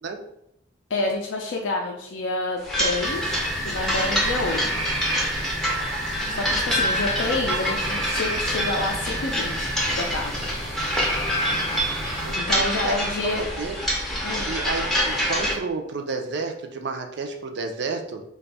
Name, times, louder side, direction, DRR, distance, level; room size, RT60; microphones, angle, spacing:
voice 1, 0.9-4.7 6.3-10.4 12.4-13.4 14.2-14.5, left 2 dB, 65° left, 0 dB, 0.4 m, -28 dB
sound 1, 2.6-15.5, equal, ahead, 0.5 m, -26 dB
sound 2, 3.0-12.4, right 1 dB, 75° right, 1.2 m, -32 dB
voice 2, 12.2-13.0 13.3-13.8 14.5-18.2, right 4 dB, 55° right, 5 dB, 0.4 m, -31 dB
2.6 x 2.3 x 4.0 m, 0.81 s
head